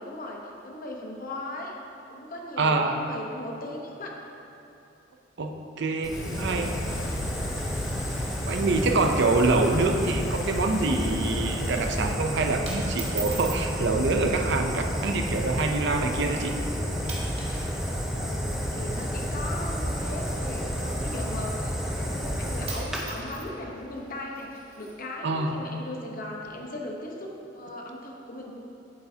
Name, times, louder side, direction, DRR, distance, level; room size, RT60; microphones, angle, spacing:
voice 1, 0.0-1.7 2.1-4.2 18.1-28.5, left 1 dB, 50° left, -1 dB, 1.0 m, -38 dB
voice 2, 2.6-3.0 5.4-6.8 8.5-16.5 25.2-25.6, right 3 dB, 65° right, 4 dB, 0.6 m, -25 dB
Fire, 6.0-23.0, equal, 5° right, 0.6 m, -30 dB
sound 1, 6.1-12.2, left 5 dB, 80° left, 0.3 m, -40 dB
sound 2, 7.9-8.9 9.2-9.3 9.6-9.8 10.2-10.5 10.9-11.2 11.9-12.2 12.6-13.7 14.7-15.0 15.6-15.7 16.5-16.7 17.0-17.7 18.0-21.5 22.3-22.4 22.6-24.9, right 4 dB, 35° right, 1.4 m, -42 dB
8.4 x 8.0 x 2.8 m, 2.9 s
head